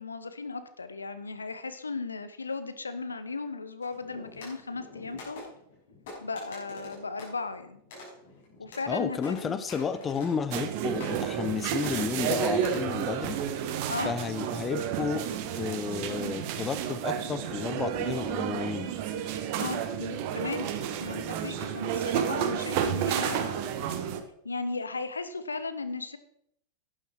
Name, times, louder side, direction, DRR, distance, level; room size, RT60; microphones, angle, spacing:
voice 1, 0.0-5.5 6.2-7.8 8.6-9.6 13.9-14.1 19.5-20.7 21.0-23.8 24.4-26.2, left 4 dB, 75° left, 11 dB, 0.9 m, -36 dB
sound 1, 3.8-10.7 11.0-11.5 11.8-12.9, left 2 dB, 55° left, 5.9 m, -46 dB
voice 2, 8.9-13.4 14.0-15.2 15.6-18.9, left 6 dB, 20° left, 13 dB, 0.9 m, -32 dB
sound 2, 10.5-24.2, right 9 dB, 45° right, 1.3 m, -31 dB
11.5 x 10.0 x 4.6 m, 0.71 s
figure-of-eight pair, 90°, 0 cm